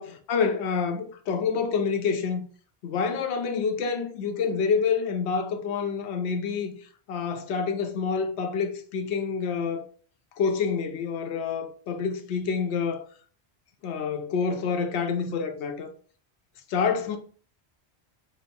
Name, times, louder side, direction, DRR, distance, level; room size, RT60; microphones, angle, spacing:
voice 1, 0.0-2.4 2.8-6.7 7.1-9.9 10.4-13.0 13.8-15.9 16.7-17.2, left 5 dB, 80° left, 0.9 m, -27 dB
3.1 x 2.0 x 4.2 m
omnidirectional pair, 1.1 m